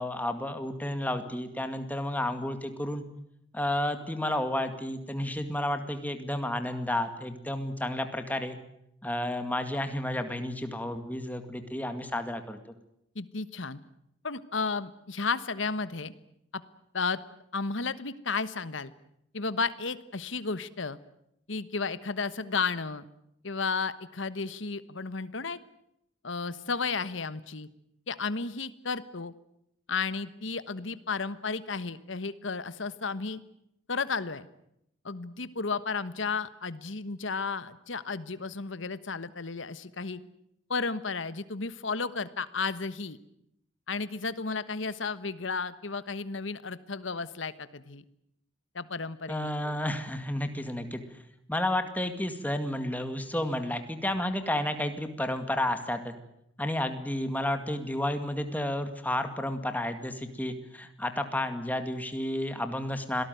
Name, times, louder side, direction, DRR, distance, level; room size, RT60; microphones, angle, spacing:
voice 1, 0.0-3.0 3.5-8.6 9.0-12.6 49.3-51.0 51.5-56.1 56.6-63.2, left 1 dB, 10° left, 8 dB, 2.2 m, -31 dB
voice 2, 13.1-13.8 14.2-16.1 16.5-16.6 16.9-17.2 17.5-18.9 19.3-21.0 21.5-23.0 23.4-25.6 26.2-27.7 28.1-29.3 29.9-33.4 33.9-34.5 35.0-40.2 40.7-43.2 43.9-48.0 48.7-49.8, left 4 dB, 80° left, 14 dB, 1.3 m, -33 dB
26.5 x 18.5 x 9.3 m, 0.78 s
head